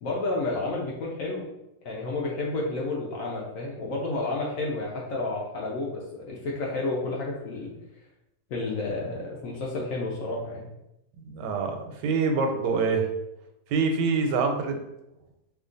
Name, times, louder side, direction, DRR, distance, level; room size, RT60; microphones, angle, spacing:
voice 1, 0.0-1.4 1.8-7.7 8.5-10.7, left 2 dB, 70° left, -3 dB, 0.9 m, -31 dB
voice 2, 11.2-13.1 13.7-14.8, right 4 dB, 85° right, 4 dB, 1.2 m, -25 dB
2.8 x 2.3 x 3.7 m, 0.90 s
omnidirectional pair, 1.8 m